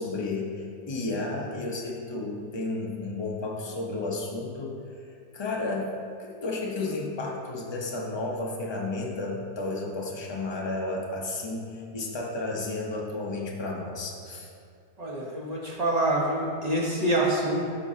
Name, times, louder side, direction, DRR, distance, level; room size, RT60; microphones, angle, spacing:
voice 1, 0.0-4.8 5.3-5.9 6.2-14.5, left 2 dB, 25° left, -2 dB, 0.7 m, -32 dB
voice 2, 15.0-17.7, right 1 dB, 30° right, -4 dB, 1.1 m, -26 dB
12.5 x 5.2 x 2.8 m, 2.3 s
omnidirectional pair, 1.6 m